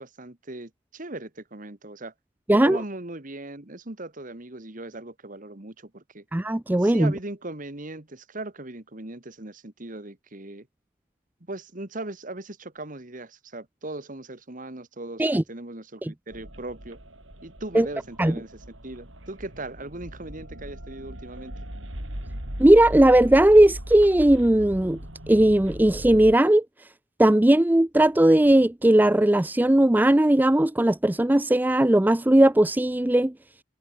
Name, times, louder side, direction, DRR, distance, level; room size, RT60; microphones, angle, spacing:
voice 1, 0.0-2.1 2.5-6.2 6.8-10.7 11.5-17.0 17.4-21.6, right 2 dB, 40° right, 1.8 m, -38 dB
voice 2, 6.3-7.1 15.2-15.4 16.0-16.1 17.7-17.9 18.2-18.3 22.6-25.0 25.3-26.6 27.2-33.3, right 1 dB, 10° right, 0.4 m, -18 dB
sound 1, 16.3-26.4, equal, 70° right, 6.1 m, -39 dB
head